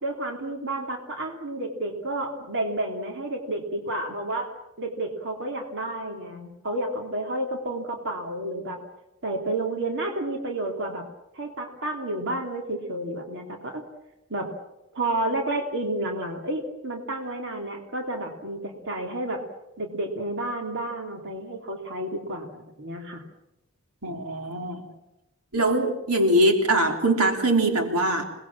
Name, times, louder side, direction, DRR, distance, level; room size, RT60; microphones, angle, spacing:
voice 1, 0.0-8.8 9.2-11.0 11.3-13.9 14.3-14.5 14.9-19.4 19.8-22.5 22.8-23.2, right 1 dB, 55° right, 2 dB, 3.3 m, -31 dB
voice 2, 24.0-24.8 25.5-28.2, right 1 dB, 80° right, 4 dB, 3.4 m, -22 dB
27.5 x 20.0 x 7.4 m, 0.91 s
head